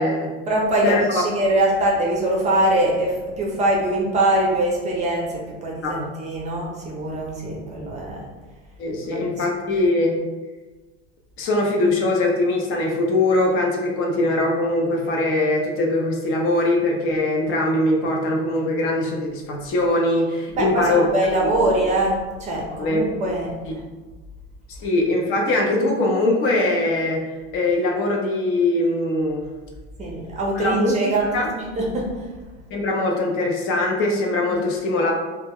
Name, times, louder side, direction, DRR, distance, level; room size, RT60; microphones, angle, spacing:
voice 1, 0.5-8.3 9.1-9.4 20.6-23.5 30.0-32.3, right 1 dB, 25° right, -2 dB, 0.5 m, -23 dB
voice 2, 8.8-10.2 11.4-21.1 22.8-23.0 24.8-27.2 27.5-29.5 30.5-31.5 32.7-35.1, left 2 dB, 45° left, 1 dB, 0.5 m, -21 dB
2.1 x 2.0 x 3.4 m, 1.2 s
supercardioid pair, 130°, 31 cm